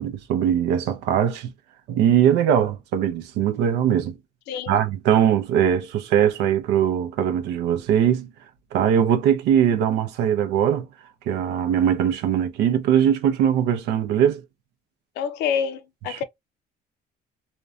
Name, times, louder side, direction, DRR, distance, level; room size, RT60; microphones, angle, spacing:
voice 1, 0.0-1.5 1.9-4.2 4.7-8.3 8.7-10.9 11.3-14.4 16.1-16.2, right 9 dB, 90° right, 0.5 m, -21 dB
voice 2, 4.5-4.8 15.2-16.2, left 7 dB, 85° left, 0.5 m, -27 dB
2.5 x 2.2 x 2.2 m
cardioid pair, 110°, 17 cm